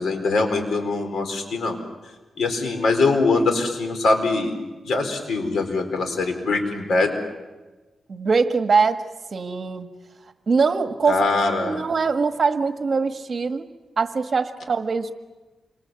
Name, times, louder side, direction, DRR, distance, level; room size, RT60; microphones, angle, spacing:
voice 1, 0.0-1.8 2.4-4.5 4.8-7.1 11.1-11.8, left 3 dB, 80° left, 6 dB, 4.4 m, -22 dB
voice 2, 8.1-9.0 9.3-9.9 10.5-11.3 11.6-13.7 14.0-15.1, right 4 dB, 45° right, 8 dB, 1.6 m, -22 dB
28.0 x 25.5 x 7.9 m, 1.2 s
wide cardioid pair, 105°, 0 cm